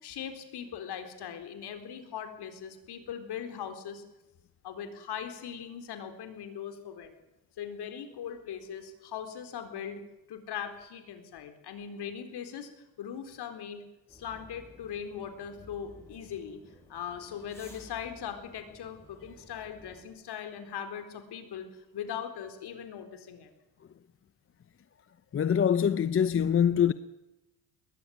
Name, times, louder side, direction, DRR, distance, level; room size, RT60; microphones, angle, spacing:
voice 1, 0.0-4.0 4.6-7.2 7.6-10.0 10.3-13.8 14.1-16.6 16.9-23.5, left 8 dB, 60° left, 4.1 m, -40 dB
sound 1, 14.1-20.0, left 1 dB, 5° left, 7.6 m, -55 dB
voice 2, 25.3-26.9, left 8 dB, 30° left, 0.8 m, -24 dB
21.0 x 14.5 x 9.4 m
cardioid pair, 95°, 45 cm